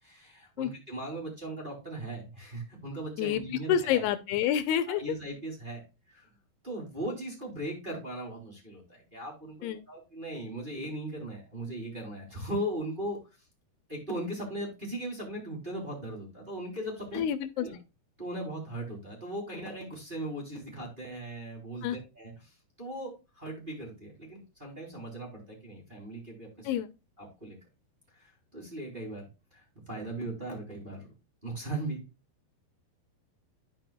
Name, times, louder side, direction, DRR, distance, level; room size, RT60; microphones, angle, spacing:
voice 1, 0.0-4.1 4.9-5.8 6.1-6.3 6.6-13.2 13.9-17.2 17.5-17.8 18.2-26.7 27.2-27.6 28.1-31.1 31.4-32.0, right 1 dB, 15° right, 2.8 m, -38 dB
voice 2, 3.7-5.2 9.6-9.8 17.1-17.7 21.8-22.0 26.7-26.9, left 10 dB, 85° left, 2.7 m, -28 dB
13.5 x 4.9 x 2.3 m
omnidirectional pair, 4.6 m